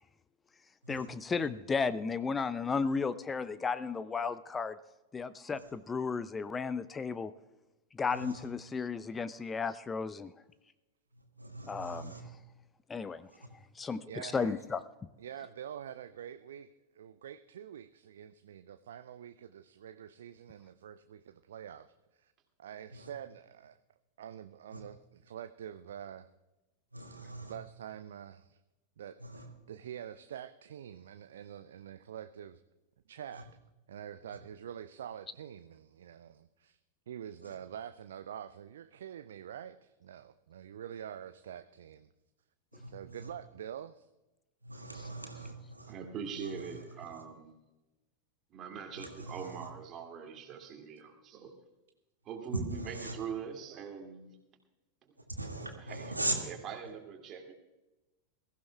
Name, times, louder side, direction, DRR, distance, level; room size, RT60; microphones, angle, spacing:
voice 1, 0.9-4.8 5.1-7.3 7.9-10.3 11.6-12.1 12.9-13.3 13.8-14.8, left 5 dB, 15° left, 15 dB, 0.5 m, -34 dB
voice 2, 8.1-8.5 11.4-12.2 13.3-13.5 22.9-23.1 24.7-24.8 26.9-27.5 29.2-29.5 33.3-33.4 37.4-37.6 42.7-43.3 44.6-45.9 46.4-46.7 49.0-49.7 52.5-53.2 55.3-56.4, right 2 dB, 85° right, 2 dB, 2.0 m, -40 dB
voice 3, 14.1-14.6 15.2-22.3 22.6-23.8 24.2-26.3 27.2-28.6 29.0-32.6 33.1-33.5 33.9-36.8 37.1-42.1 42.9-44.1, right 9 dB, 60° right, 12 dB, 0.5 m, -46 dB
voice 4, 45.9-47.6 48.5-51.5 52.2-54.4 55.0-55.1 55.8-56.1 56.4-57.5, right 7 dB, 30° right, 3 dB, 2.5 m, -43 dB
22.0 x 15.0 x 2.3 m, 1.0 s
figure-of-eight pair, 90°, 0 cm